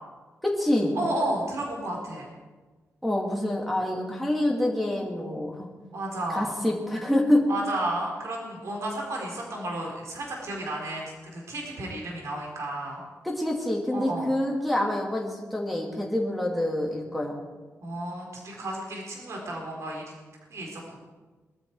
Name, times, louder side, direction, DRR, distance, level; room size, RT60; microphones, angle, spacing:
voice 1, 0.4-1.0 3.0-5.7 6.3-7.4 13.2-17.4, left 1 dB, ahead, -2 dB, 2.6 m, -26 dB
voice 2, 0.9-2.3 5.9-6.5 7.5-13.0 13.9-14.3 17.8-20.1 20.5-21.0, right 1 dB, 60° right, -1 dB, 4.7 m, -32 dB
22.0 x 13.0 x 4.8 m, 1.3 s
wide cardioid pair, 165°, 6 cm